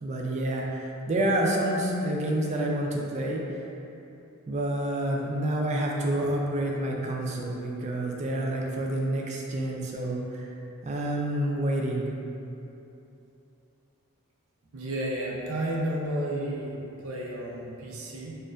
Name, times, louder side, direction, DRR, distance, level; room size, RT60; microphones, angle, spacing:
voice 1, 0.0-3.4 4.5-10.5 10.8-12.1, right 1 dB, 30° right, -1 dB, 0.3 m, -28 dB
voice 2, 14.7-18.4, right 1 dB, 75° right, -3 dB, 0.6 m, -32 dB
4.2 x 2.4 x 2.5 m, 2.9 s
head